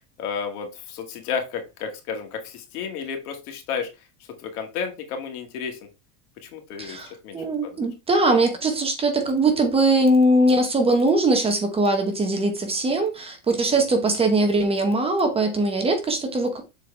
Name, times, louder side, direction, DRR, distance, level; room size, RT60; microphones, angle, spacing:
voice 1, 0.2-3.9 4.4-5.8 6.4-7.0 7.2-7.4 7.6-7.8 13.6-14.0, left 6 dB, 85° left, 2.1 m, -32 dB
voice 2, 6.8-16.6, right 2 dB, 15° right, 0.8 m, -21 dB
6.8 x 4.6 x 3.3 m
supercardioid pair, 160°, 43 cm